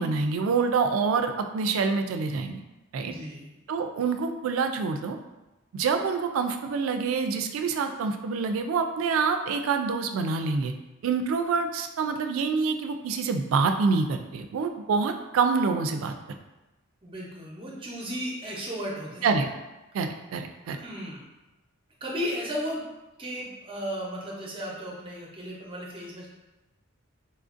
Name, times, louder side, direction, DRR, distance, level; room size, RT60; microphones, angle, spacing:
voice 1, 0.0-2.6 2.9-3.1 3.7-5.2 5.7-10.7 11.0-16.1 19.2-19.5 19.9-20.8, right 5 dB, 75° right, 7 dB, 0.3 m, -26 dB
voice 2, 3.0-3.5 17.0-19.3 20.7-21.3 22.0-22.9 23.2-26.3, equal, 25° right, -3 dB, 0.6 m, -35 dB
4.2 x 2.4 x 2.5 m, 1.1 s
head